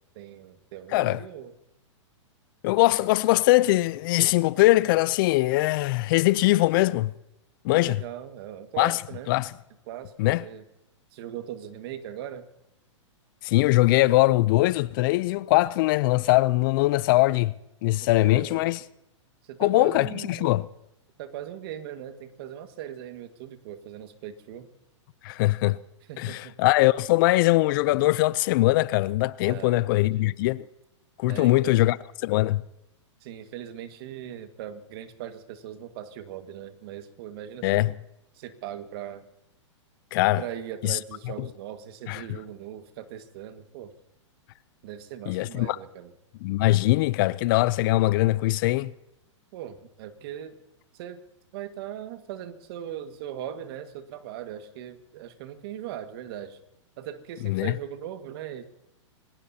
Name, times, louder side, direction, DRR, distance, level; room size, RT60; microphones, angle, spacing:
voice 1, 0.2-1.5 7.7-9.4 9.9-10.1 10.4-10.6 11.1-12.5 18.2-18.6 19.4-20.6 21.2-24.7 26.1-26.6 29.5-30.3 31.3-31.8 33.2-37.8 38.3-39.3 40.4-43.9 44.8-46.1 49.5-50.6 50.9-51.2 51.5-56.6 57.0-58.6, right 10 dB, 50° right, 1.8 m, -39 dB
voice 2, 0.9-1.2 2.6-7.1 7.6-8.0 8.8-9.0 9.3-9.5 10.2-10.4 13.4-17.5 17.8-18.8 19.6-20.6 25.2-25.8 26.2-30.6 31.2-32.0 32.2-32.6 37.6-37.9 40.1-40.4 40.8-41.0 42.1-42.2 45.3-45.8 46.4-48.9 57.4-57.7, left 18 dB, 45° left, 0.5 m, -22 dB
27.5 x 17.5 x 2.8 m
hypercardioid pair, 130°, 16 cm